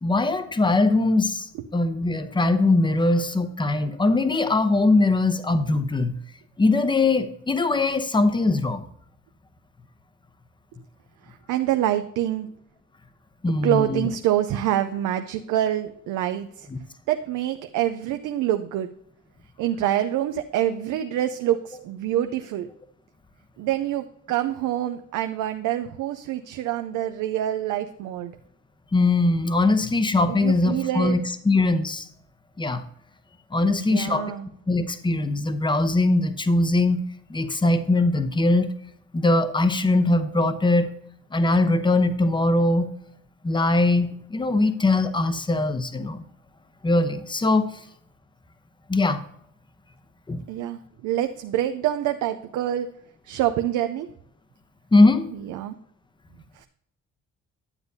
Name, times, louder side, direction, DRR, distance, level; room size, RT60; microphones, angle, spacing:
voice 1, 0.0-6.2 6.6-8.8 13.4-14.1 16.7-16.8 28.9-32.1 32.6-32.8 33.5-34.4 34.7-37.0 37.3-38.7 39.1-40.9 41.3-42.9 43.4-46.2 46.8-47.7 48.9-49.2 50.3-50.4 54.9-55.3, left 2 dB, 15° left, 10 dB, 0.8 m, -21 dB
voice 2, 11.5-12.5 13.6-16.7 17.1-18.9 19.6-22.7 23.6-28.3 30.3-31.1 33.7-34.5 50.5-52.9 53.3-54.1 55.5-55.7, right 12 dB, 85° right, 8 dB, 0.5 m, -26 dB
9.8 x 7.9 x 2.7 m, 0.71 s
cardioid pair, 90°, 30 cm